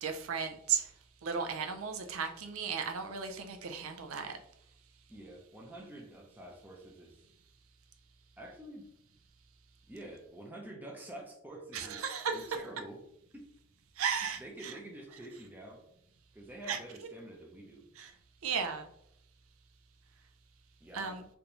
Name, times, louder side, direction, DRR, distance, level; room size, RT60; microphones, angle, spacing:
voice 1, 0.0-0.9 1.2-4.4 11.7-12.4 14.0-14.7 16.7-16.8 18.0-18.1 18.4-18.9 20.9-21.3, right 6 dB, 80° right, 7 dB, 0.5 m, -35 dB
voice 2, 5.1-7.2 8.4-8.9 9.9-12.0 12.3-13.0 13.3-13.5 14.2-15.8 16.3-17.9 20.8-21.2, right 1 dB, 10° right, 0 dB, 0.5 m, -48 dB
3.3 x 2.5 x 2.9 m, 0.73 s
head